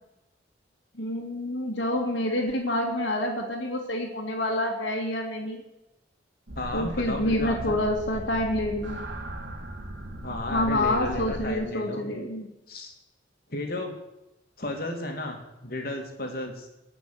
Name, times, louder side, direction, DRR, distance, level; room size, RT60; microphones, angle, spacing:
voice 1, 1.0-5.6 6.7-9.0 10.5-12.5, left 1 dB, 85° left, -4 dB, 2.2 m, -27 dB
sound 1, 6.5-11.5, right 1 dB, 70° right, 2.6 m, -37 dB
voice 2, 6.6-7.7 10.2-12.0 12.7-12.9 13.5-13.9 14.6-16.7, left 1 dB, 55° left, 3 dB, 2.6 m, -33 dB
18.5 x 6.1 x 9.3 m, 0.93 s
head